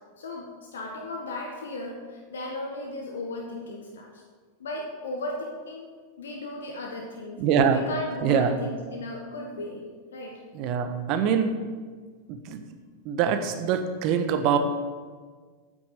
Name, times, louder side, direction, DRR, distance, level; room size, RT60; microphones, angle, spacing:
voice 1, 0.2-4.2 4.6-5.9 6.2-7.4 7.7-9.8 10.1-10.4, left 2 dB, 65° left, 0 dB, 1.5 m, -36 dB
voice 2, 7.4-7.8 8.2-8.6 10.5-11.6 12.3-12.6 13.0-14.6, right 7 dB, 40° right, 8 dB, 1.2 m, -24 dB
9.6 x 9.3 x 6.8 m, 1.5 s
figure-of-eight pair, 90°, 0 cm